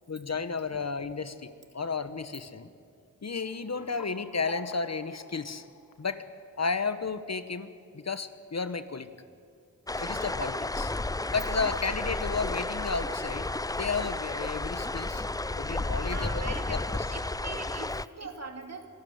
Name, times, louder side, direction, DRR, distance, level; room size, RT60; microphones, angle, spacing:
voice 1, 0.1-2.7 3.2-5.6 6.0-6.2 6.6-9.1 10.0-10.9 11.3-13.5 13.7-15.2 15.6-17.1, left 4 dB, 50° left, 12 dB, 1.0 m, -33 dB
sound 1, 3.4-6.7, left 3 dB, 85° left, 1.4 m, -48 dB
sound 2, 9.9-18.1, left 2 dB, 10° left, 0.4 m, -32 dB
voice 2, 10.0-10.4 16.0-16.8 17.1-18.9, right 3 dB, 50° right, 4 dB, 2.5 m, -41 dB
25.5 x 12.5 x 9.4 m, 2.4 s
cardioid pair, 55°, 33 cm